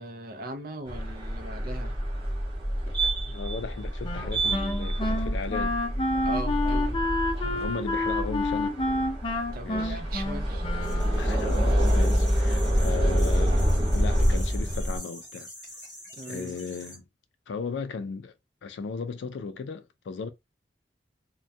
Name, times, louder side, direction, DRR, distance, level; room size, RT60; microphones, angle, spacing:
voice 1, 0.0-2.0 6.2-7.0 9.5-10.7 11.3-11.4 16.1-16.6, right 1 dB, 55° right, 0.5 m, -39 dB
sound 1, 0.9-15.0, equal, 30° right, 0.8 m, -27 dB
voice 2, 3.3-5.8 7.4-8.7 9.6-10.0 11.0-15.5 16.3-17.0 17.5-18.4 18.6-20.3, left 5 dB, 85° left, 0.4 m, -36 dB
Wind instrument woodwind instrument, 4.0-11.5, left 2 dB, 30° left, 0.5 m, -29 dB
sound 2, 10.8-17.0, equal, ahead, 1.1 m, -45 dB
2.2 x 2.2 x 2.6 m
head